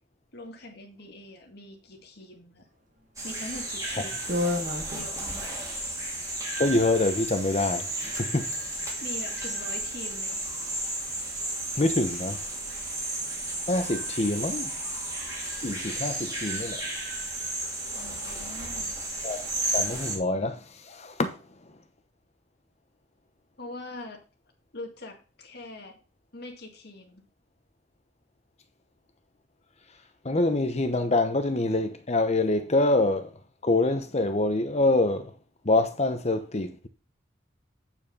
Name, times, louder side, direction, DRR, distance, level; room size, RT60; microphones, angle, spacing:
voice 1, 0.3-2.6 3.2-4.2 4.9-5.5 9.0-10.4 17.9-19.0 23.6-24.2 24.7-25.9 26.3-27.2, left 2 dB, 60° left, 1.9 m, -43 dB
sound 1, 3.2-20.2, right 2 dB, 20° right, 2.4 m, -33 dB
sound 2, 3.5-3.7 4.3-5.4 6.4-6.8 7.4-7.5 7.8-8.3 8.5-8.7 9.2-9.9, left 2 dB, 45° right, 1.5 m, -33 dB
voice 2, 6.5-8.5 11.8-12.4 13.7-14.7 15.6-16.8 19.2-19.5 19.7-21.4 30.2-33.3 33.6-35.3 35.6-36.9, left 2 dB, 35° left, 0.9 m, -25 dB
9.0 x 4.6 x 5.3 m
head